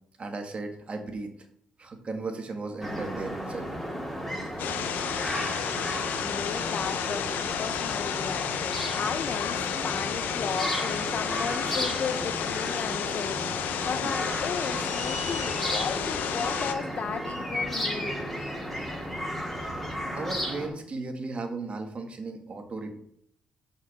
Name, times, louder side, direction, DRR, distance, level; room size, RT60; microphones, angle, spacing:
voice 1, 0.2-1.3 1.8-3.7 14.0-14.1 20.1-23.0, right 3 dB, 40° right, 4 dB, 1.6 m, -35 dB
sound 1, 2.8-20.7, equal, 5° left, 2.5 m, -34 dB
sound 2, 4.6-16.7, left 8 dB, 80° left, 0.7 m, -31 dB
voice 2, 6.2-7.3 7.6-13.4 13.8-18.3, left 6 dB, 55° left, 9 dB, 1.0 m, -35 dB
5.8 x 5.2 x 5.9 m, 0.69 s
cardioid pair, 80°, 3 cm